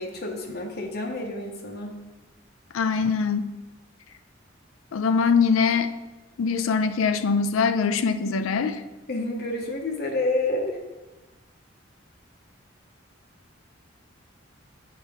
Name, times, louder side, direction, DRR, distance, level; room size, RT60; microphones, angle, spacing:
voice 1, 0.0-2.0 9.1-10.8, left 2 dB, 50° left, 2 dB, 0.8 m, -29 dB
voice 2, 2.7-3.5 4.9-5.9 6.4-8.8, left 5 dB, 85° left, 11 dB, 0.4 m, -22 dB
8.4 x 4.4 x 3.5 m, 1.1 s
head